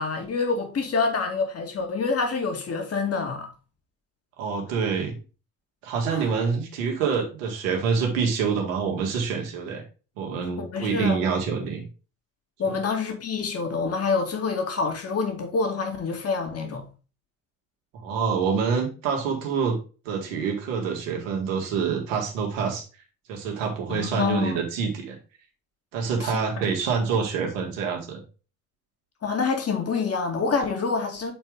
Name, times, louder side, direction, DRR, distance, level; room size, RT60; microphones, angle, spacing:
voice 1, 0.0-3.5 6.1-6.3 10.6-11.2 12.6-16.8 23.9-24.6 26.2-26.3 29.2-31.3, left 4 dB, 35° left, 2.2 m, -27 dB
voice 2, 4.4-5.2 5.8-9.8 10.2-11.9 12.7-12.8 17.9-19.8 20.1-22.8 23.3-25.2 25.9-28.2, right 6 dB, 70° right, 2.1 m, -26 dB
8.1 x 4.5 x 3.8 m
figure-of-eight pair, 55°, 40 cm